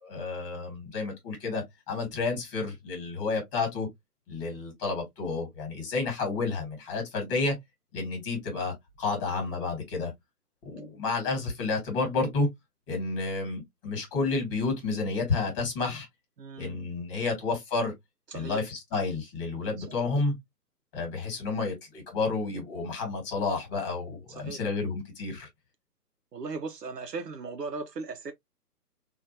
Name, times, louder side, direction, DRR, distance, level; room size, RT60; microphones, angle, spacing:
voice 1, 0.0-3.9 4.3-7.6 7.9-10.1 10.6-12.5 12.9-16.1 16.6-17.9 18.3-20.3 20.9-25.5, left 3 dB, 20° left, 1.4 m, -30 dB
voice 2, 16.4-16.8 17.2-17.4 18.3-18.6 19.8-19.9 24.4-24.6 26.3-28.3, right 4 dB, 80° right, 0.7 m, -37 dB
4.2 x 2.4 x 2.6 m
figure-of-eight pair, 135°, 48 cm